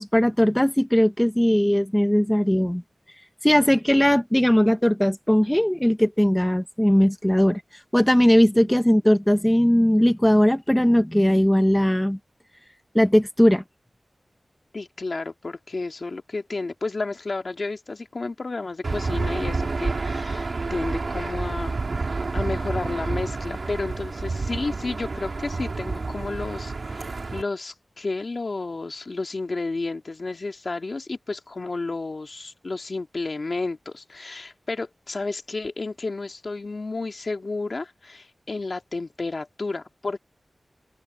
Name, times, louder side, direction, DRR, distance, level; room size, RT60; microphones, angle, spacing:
voice 1, 0.0-2.8 3.4-7.6 7.9-12.2 12.9-13.6, equal, 10° left, 1.3 m, -19 dB
voice 2, 14.7-21.8 22.3-40.2, left 3 dB, 55° left, 2.3 m, -31 dB
Aircraft / Engine, 18.8-27.4, right 3 dB, 65° right, 2.8 m, -29 dB
open air
wide cardioid pair, 70°, 0 cm